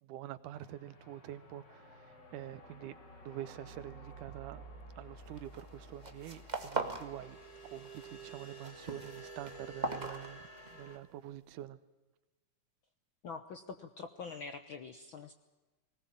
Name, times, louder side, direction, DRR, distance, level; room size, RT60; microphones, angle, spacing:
voice 1, 0.0-3.0 3.2-4.6 5.0-7.4 7.6-11.8, right 12 dB, 85° right, 2.5 m, -46 dB
sound 1, 0.5-11.0, right 2 dB, 35° left, 3.0 m, -52 dB
sound 2, 5.4-5.7 5.9-7.1 7.4-8.1 8.4-10.9, right 3 dB, 25° right, 1.0 m, -39 dB
voice 2, 13.2-15.3, left 5 dB, 65° left, 1.2 m, -45 dB
20.5 x 19.0 x 8.8 m
omnidirectional pair, 3.5 m